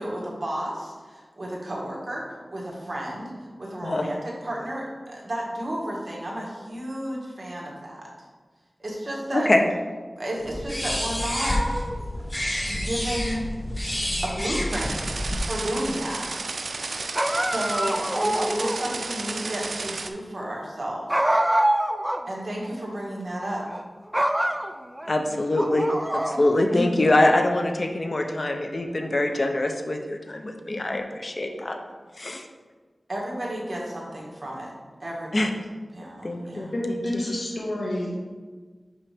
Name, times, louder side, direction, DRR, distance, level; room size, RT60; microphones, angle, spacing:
voice 1, 0.0-8.1 8.8-9.5 10.2-11.6 12.6-13.5 14.2-15.0 15.3-16.3 17.4-21.4 22.3-23.7 33.1-34.7 35.0-35.5 35.9-36.7, right 1 dB, 50° right, -4 dB, 1.7 m, -32 dB
voice 2, 9.3-9.6 25.1-31.8 32.2-32.4 35.3-35.5 36.2-36.7, left 1 dB, 55° left, 4 dB, 0.6 m, -24 dB
sound 1, 10.4-15.4, left 1 dB, 15° left, 0.8 m, -29 dB
sound 2, 14.7-20.1, right 3 dB, 90° right, 0.3 m, -33 dB
sound 3, 17.1-18.9 21.1-22.3 22.6-22.7 23.6-23.8 24.1-25.1 25.6-26.7, right 1 dB, 15° right, 0.4 m, -25 dB
voice 3, 36.7-38.2, left 1 dB, 70° left, -4 dB, 1.4 m, -28 dB
5.8 x 5.3 x 3.4 m, 1.4 s
wide cardioid pair, 60°, 0 cm